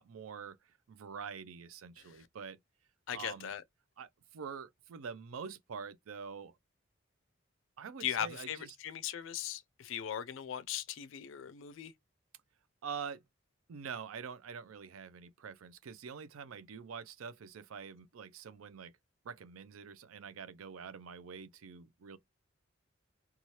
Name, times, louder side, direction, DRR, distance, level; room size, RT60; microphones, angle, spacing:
voice 1, 0.0-2.6 3.1-3.5 4.0-6.6 7.8-8.8 12.8-13.2 13.7-18.9 19.2-22.2, right 6 dB, 90° right, 0.4 m, -46 dB
voice 2, 3.1-3.6 8.0-11.9, left 9 dB, 70° left, 0.3 m, -39 dB
2.8 x 2.3 x 3.0 m
head